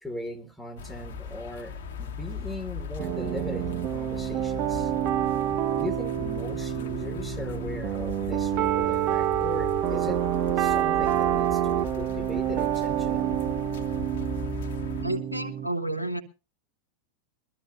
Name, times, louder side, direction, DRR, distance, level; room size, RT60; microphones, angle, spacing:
voice 1, 0.0-4.9 5.8-10.2 10.6-13.4, left 1 dB, ahead, 9 dB, 1.8 m, -39 dB
sound 1, 0.8-15.1, left 5 dB, 55° left, 1.2 m, -38 dB
sound 2, 3.0-15.7, right 11 dB, 40° right, 0.9 m, -27 dB
voice 2, 15.0-16.2, right 1 dB, 90° left, 5 dB, 1.1 m, -30 dB
22.5 x 13.0 x 2.6 m, 0.30 s
figure-of-eight pair, 90°, 0 cm